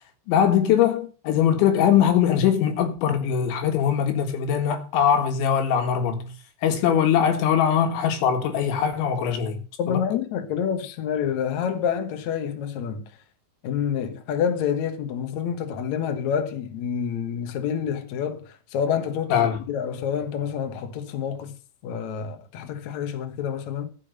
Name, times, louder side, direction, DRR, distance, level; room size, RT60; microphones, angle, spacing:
voice 1, 0.3-6.3 6.6-9.6 9.9-10.0 19.3-19.6, left 8 dB, 80° left, 4.0 m, -21 dB
voice 2, 9.8-13.1 13.6-21.6 21.8-23.9, left 8 dB, 65° left, 1.9 m, -28 dB
13.0 x 7.0 x 6.7 m
omnidirectional pair, 5.3 m